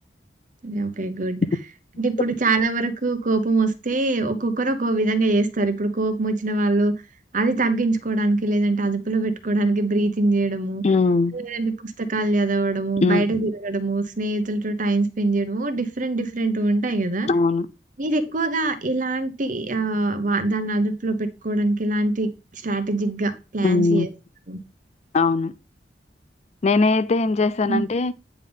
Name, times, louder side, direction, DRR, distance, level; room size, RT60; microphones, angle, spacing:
voice 1, 0.6-1.4 2.0-7.0 7.3-10.8 11.3-17.3 18.0-24.1 24.5-24.6 27.7-27.8, right 2 dB, 45° right, 1.0 m, -23 dB
voice 2, 10.8-11.4 13.0-13.3 17.3-17.7 23.6-24.1 25.1-25.5 26.6-28.1, left 3 dB, 40° left, 0.4 m, -20 dB
9.3 x 3.6 x 5.3 m
head